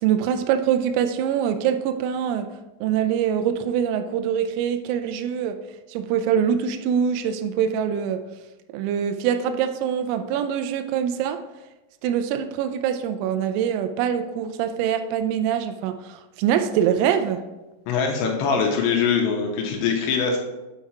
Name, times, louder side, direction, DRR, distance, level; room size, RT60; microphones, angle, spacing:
voice 1, 0.0-5.6 5.9-8.2 8.7-11.4 12.0-17.4, right 8 dB, 85° right, 8 dB, 3.2 m, -24 dB
voice 2, 17.9-20.4, left 5 dB, 80° left, 1 dB, 2.7 m, -22 dB
8.2 x 4.7 x 4.4 m, 1.1 s
omnidirectional pair, 6.0 m